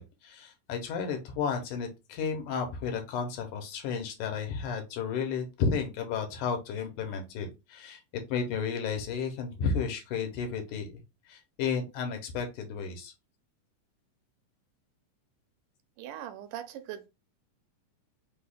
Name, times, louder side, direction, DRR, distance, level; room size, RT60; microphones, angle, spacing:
voice 1, 0.0-8.0 8.3-11.0 11.3-13.1, left 5 dB, 80° left, 2.4 m, -33 dB
voice 2, 16.0-17.1, right 11 dB, 90° right, 2.2 m, -40 dB
5.7 x 2.3 x 3.5 m
omnidirectional pair, 3.7 m